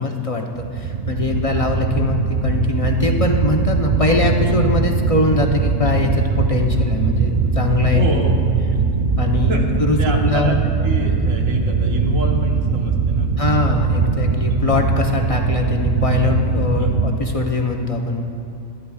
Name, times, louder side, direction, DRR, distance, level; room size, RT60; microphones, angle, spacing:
voice 1, 0.0-8.3 9.2-10.5 13.4-18.2, left 3 dB, 35° left, 1 dB, 0.7 m, -22 dB
sound 1, 0.6-17.1, right 4 dB, 55° right, 0.4 m, -20 dB
voice 2, 7.9-8.4 9.4-9.7 10.0-13.3 16.8-17.0, right 1 dB, 85° right, 0 dB, 1.6 m, -27 dB
19.5 x 12.5 x 2.4 m, 2.8 s
omnidirectional pair, 1.3 m